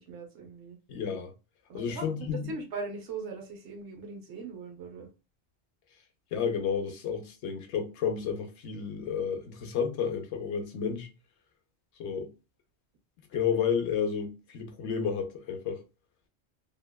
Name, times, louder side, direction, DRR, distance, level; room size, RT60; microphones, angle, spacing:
voice 1, 0.0-0.8 1.7-2.1 2.5-5.1, right 4 dB, 85° right, 1.0 m, -40 dB
voice 2, 0.9-1.3 1.7-2.5 6.3-11.1 12.0-12.3 13.3-15.8, left 7 dB, 85° left, 0.9 m, -31 dB
2.7 x 2.1 x 2.2 m
omnidirectional pair, 1.1 m